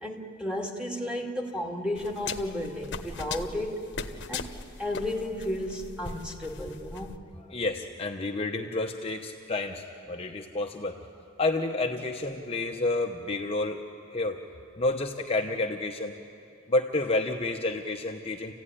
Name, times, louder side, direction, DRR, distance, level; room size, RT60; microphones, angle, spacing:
voice 1, 0.0-3.8 4.3-7.2, left 1 dB, 5° right, 0 dB, 2.3 m, -33 dB
sound 1, 2.0-7.2, left 5 dB, 55° left, 1.1 m, -39 dB
voice 2, 7.5-11.0 11.4-13.8 14.1-14.4 14.8-16.1 16.7-18.5, left 2 dB, 30° left, 2 dB, 0.9 m, -30 dB
28.5 x 16.0 x 10.0 m, 2.7 s
head